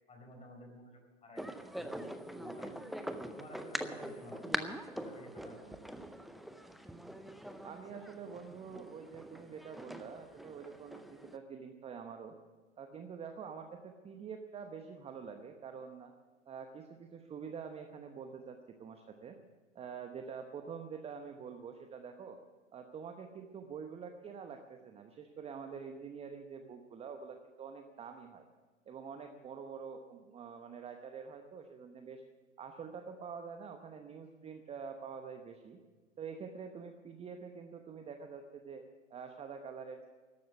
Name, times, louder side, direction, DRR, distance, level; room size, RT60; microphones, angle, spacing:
voice 1, 0.1-2.9 3.3-4.5 4.9-5.9, left 1 dB, 15° left, 3 dB, 4.3 m, -53 dB
sound 1, 1.4-11.4, equal, ahead, 0.5 m, -43 dB
voice 2, 7.6-12.4 12.8-16.1 16.5-19.4 19.7-22.4 22.7-28.4 28.9-32.2 32.6-35.8 36.2-38.8 39.1-40.1, right 6 dB, 15° right, 6 dB, 0.9 m, -46 dB
13.5 x 12.0 x 8.1 m, 1.4 s
figure-of-eight pair, 105°, 37 cm